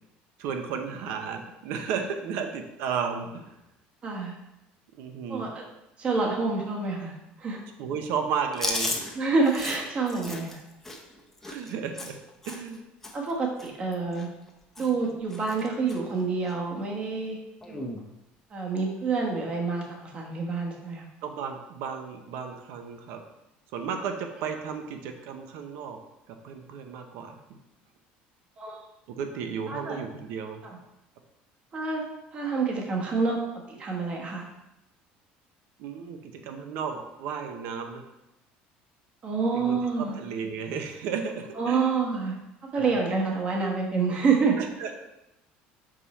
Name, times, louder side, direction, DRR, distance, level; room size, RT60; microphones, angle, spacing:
voice 1, 0.4-3.5 4.9-5.4 7.8-8.9 11.4-12.2 12.4-12.8 21.2-23.2 23.7-26.0 26.3-27.4 29.1-30.6 35.8-38.0 39.5-39.8 40.2-42.0 42.7-42.9 44.6-45.0, right 6 dB, 70° right, 5 dB, 0.9 m, -33 dB
voice 2, 4.0-4.3 5.3-5.5 6.0-7.6 9.1-10.6 13.1-14.3 14.8-17.4 17.7-17.9 18.5-21.0 28.6-28.8 29.7-30.0 31.7-32.0 32.3-33.4 33.8-34.5 39.2-40.2 41.5-42.4 42.7-44.6, right 4 dB, 30° right, -1 dB, 1.2 m, -27 dB
Chewing mastication, 8.5-12.8 13.0-13.3 13.6-14.5 14.7-15.1 15.3-16.0 16.4-16.6 17.6-18.0, left 2 dB, 10° left, 0.7 m, -35 dB
5.5 x 5.4 x 4.2 m, 0.91 s
cardioid pair, 155°, 4 cm